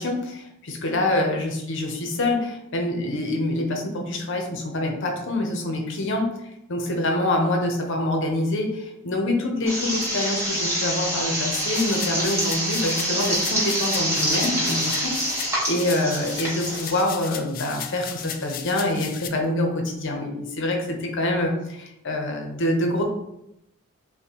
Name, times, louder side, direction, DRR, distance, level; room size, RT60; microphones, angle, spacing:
voice 1, 0.0-6.3 6.7-23.0, left 1 dB, 60° left, 3 dB, 0.8 m, -26 dB
sound 1, 9.7-17.0, equal, 15° right, 1.3 m, -26 dB
sound 2, 11.5-19.3, left 9 dB, 40° left, 0.3 m, -36 dB
5.7 x 2.2 x 2.9 m, 0.84 s
head